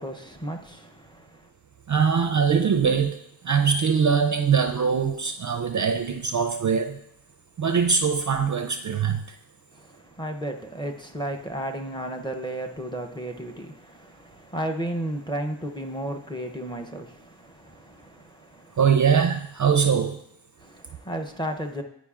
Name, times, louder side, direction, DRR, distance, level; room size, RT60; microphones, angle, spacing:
voice 1, 0.0-1.5 9.7-18.8 20.6-21.8, right 1 dB, 10° left, 0.6 m, -34 dB
voice 2, 1.9-3.2 3.4-7.0 7.6-9.2 18.8-20.2, right 6 dB, 40° right, 0.4 m, -22 dB
9.9 x 4.8 x 2.4 m
cardioid pair, 65°, 47 cm